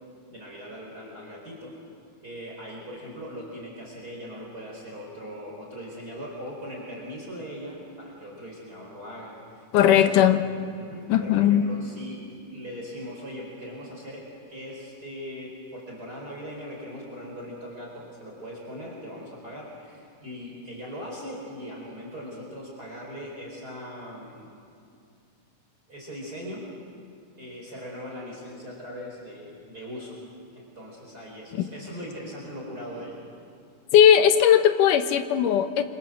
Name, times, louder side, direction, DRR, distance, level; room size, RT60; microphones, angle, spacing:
voice 1, 0.3-1.8 2.2-10.1 10.8-24.5 25.9-26.7 27.4-30.2 30.5-33.2, equal, 30° right, -2 dB, 4.9 m, -40 dB
voice 2, 9.7-10.4 11.1-11.6 33.9-35.8, left 9 dB, 80° left, 8 dB, 2.7 m, -18 dB
27.5 x 25.0 x 7.6 m, 2.4 s
omnidirectional pair, 3.7 m